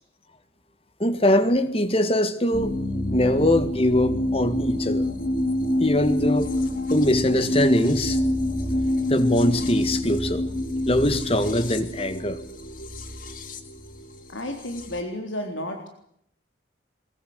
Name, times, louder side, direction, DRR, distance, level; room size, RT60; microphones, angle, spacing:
voice 1, 1.0-2.8 3.1-5.1 5.8-6.5 6.9-8.2 9.1-10.4 10.9-12.4, left 1 dB, 30° left, 11 dB, 1.8 m, -22 dB
sound 1, 2.5-15.0, left 1 dB, 45° left, 2.5 m, -27 dB
voice 2, 14.3-15.9, left 1 dB, 90° left, 4 dB, 3.7 m, -32 dB
22.5 x 21.5 x 8.0 m, 0.71 s
head